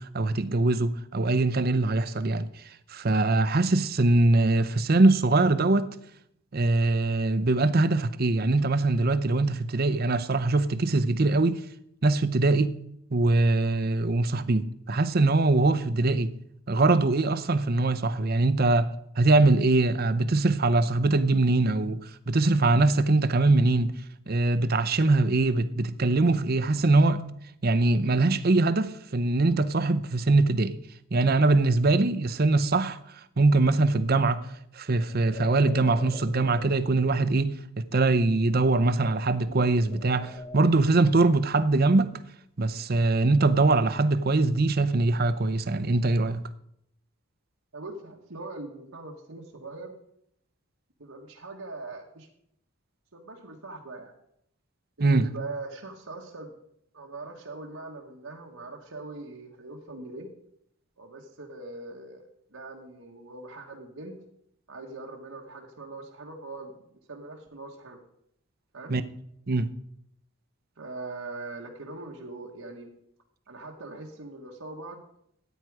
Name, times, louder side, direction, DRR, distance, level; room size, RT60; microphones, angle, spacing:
voice 1, 0.0-6.0 6.5-11.6 12.0-12.8 13.1-16.3 16.7-18.9 19.2-23.9 24.3-27.3 27.6-30.8 31.1-34.5 34.7-42.2 42.6-46.4 55.0-55.3 68.9-69.0 69.5-69.7, right 2 dB, 45° right, 0.7 m, -23 dB
sound 1, 35.0-37.4 39.2-40.8, left 3 dB, 35° left, 1.1 m, -44 dB
voice 2, 47.7-49.9 51.0-52.3 53.1-54.1 55.0-56.5 56.9-60.3 61.0-64.1 64.7-66.7 67.1-68.0 68.7-68.9 70.8-72.9 73.5-75.0, right 2 dB, 85° right, 1.5 m, -41 dB
13.5 x 9.2 x 4.8 m
head